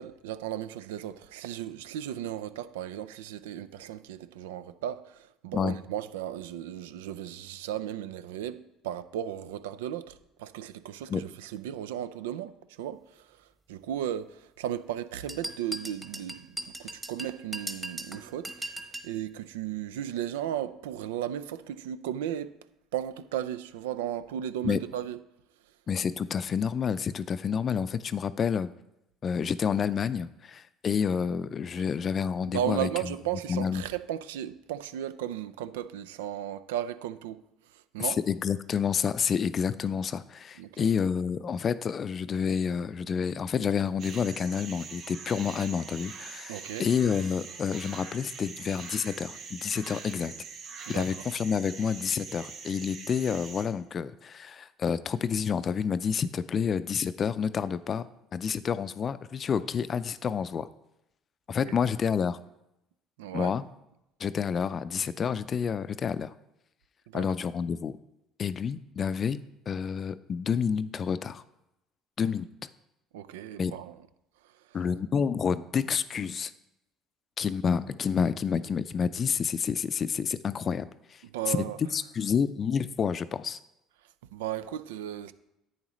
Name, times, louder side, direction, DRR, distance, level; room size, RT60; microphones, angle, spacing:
voice 1, 0.0-18.8 19.0-22.6 22.9-25.2 25.6-25.7 31.7-31.8 32.5-38.2 40.6-40.9 46.5-46.9 50.9-51.1 61.7-61.9 63.2-63.6 67.1-67.2 73.1-74.0 74.4-74.8 81.2-81.8 84.0-85.3, right 11 dB, 85° right, 0.4 m, -35 dB
sound 1, 15.3-19.1, right 1 dB, 10° right, 1.1 m, -38 dB
voice 2, 25.9-28.7 29.2-32.9 33.5-33.8 38.0-50.3 50.9-58.1 58.3-60.7 61.5-62.4 63.3-63.6 64.2-66.3 67.1-68.0 68.4-69.4 69.7-71.4 72.2-72.5 73.6-73.8 74.7-76.5 77.4-81.2 81.5-83.6, left 7 dB, 45° left, 0.4 m, -29 dB
sound 2, 44.0-53.6, right 5 dB, 60° right, 1.6 m, -43 dB
10.5 x 8.5 x 3.1 m
hypercardioid pair, 70°, 0 cm